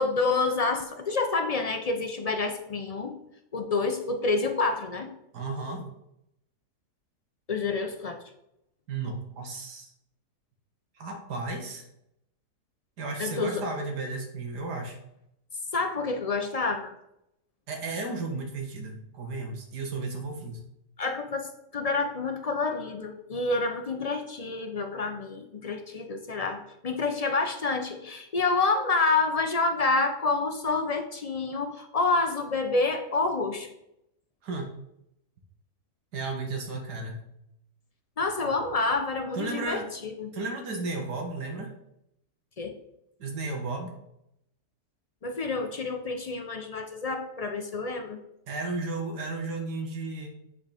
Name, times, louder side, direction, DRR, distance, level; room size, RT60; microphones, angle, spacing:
voice 1, 0.0-3.1 3.5-5.1 7.5-8.2 13.2-13.6 15.7-16.9 21.0-33.7 38.2-40.3 42.6-42.8 45.2-48.2, left 3 dB, 65° left, 5 dB, 0.3 m, -28 dB
voice 2, 5.3-5.9 8.9-9.9 11.0-11.8 13.0-15.0 17.7-20.6 34.4-34.7 36.1-37.2 39.3-39.9 40.3-41.8 43.2-43.9 48.5-50.3, right 3 dB, 85° right, 3 dB, 2.0 m, -34 dB
8.5 x 4.7 x 5.1 m, 0.81 s
omnidirectional pair, 1.7 m